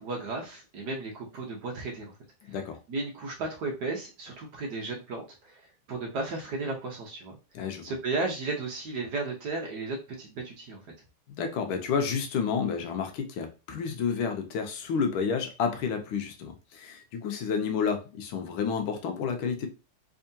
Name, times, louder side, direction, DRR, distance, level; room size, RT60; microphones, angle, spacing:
voice 1, 0.0-2.2 2.4-2.6 2.9-7.4 7.8-10.8, right 3 dB, 60° right, 1.2 m, -34 dB
voice 2, 2.5-2.8 7.5-7.9 11.3-19.7, left 6 dB, 75° left, 1.4 m, -30 dB
3.6 x 3.4 x 2.7 m
omnidirectional pair, 2.4 m